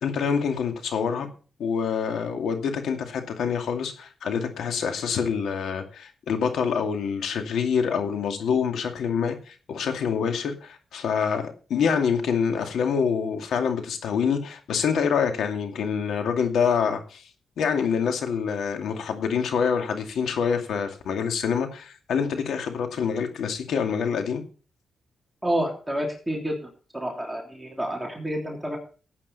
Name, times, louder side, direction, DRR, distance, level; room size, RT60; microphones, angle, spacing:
voice 1, 0.0-1.3 1.6-17.2 17.6-24.4, left 6 dB, 85° left, 2.4 m, -26 dB
voice 2, 25.4-28.8, equal, 5° right, 3.3 m, -29 dB
15.0 x 9.1 x 4.1 m
cardioid pair, 85°, 0 cm